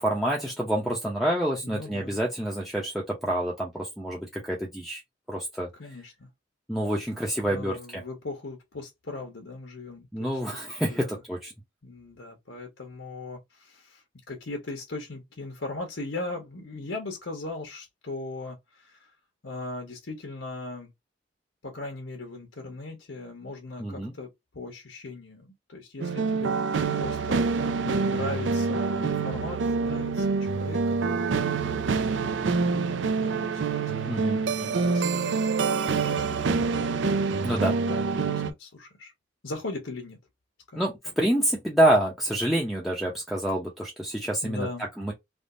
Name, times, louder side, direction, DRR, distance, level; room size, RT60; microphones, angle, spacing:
voice 1, 0.0-5.0 5.3-5.7 6.7-8.0 10.1-11.5 23.8-24.1 34.1-34.7 37.4-37.8 40.8-44.7 45.0-45.1, right 1 dB, ahead, 0.7 m, -27 dB
voice 2, 1.6-2.2 5.8-6.3 7.4-10.4 10.9-11.2 11.8-19.1 19.4-20.9 21.6-26.6 26.9-32.5 33.0-36.8 37.6-39.1 39.4-40.2 40.7-40.9 44.4-44.9, left 2 dB, 80° left, 1.0 m, -39 dB
sound 1, 26.0-38.5, right 4 dB, 70° right, 0.5 m, -26 dB
3.5 x 2.5 x 2.5 m
head